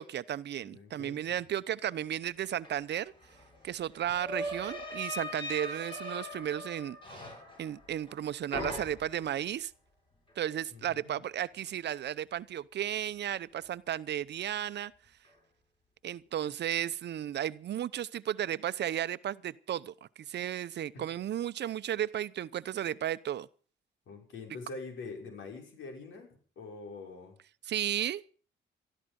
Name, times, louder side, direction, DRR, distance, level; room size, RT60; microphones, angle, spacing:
voice 1, 0.0-3.1 3.6-7.2 7.6-9.7 10.4-14.9 16.0-19.9 20.3-23.5 27.6-28.3, right 11 dB, 60° right, 0.8 m, -34 dB
voice 2, 0.6-1.4 10.7-11.2 20.9-21.1 24.1-27.4, left 3 dB, 75° left, 6.0 m, -45 dB
sound 1, 2.6-2.7 3.0-8.2 8.5-9.3, left 1 dB, 25° left, 7.1 m, -40 dB
19.5 x 13.5 x 5.3 m
cardioid pair, 90°, 20 cm